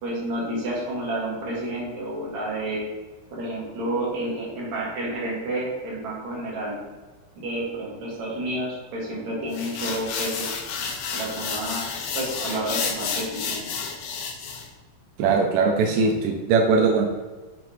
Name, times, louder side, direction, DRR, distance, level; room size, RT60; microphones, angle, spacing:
voice 1, 0.0-2.8 3.3-6.8 7.4-10.5 11.1-11.9 12.1-13.7, right 1 dB, 55° right, -5 dB, 2.7 m, -30 dB
sound 1, 9.5-14.7, left 5 dB, 80° left, 1.9 m, -31 dB
voice 2, 15.2-17.1, right 4 dB, 85° right, 2 dB, 1.9 m, -20 dB
6.7 x 3.7 x 4.6 m, 1.3 s
omnidirectional pair, 4.6 m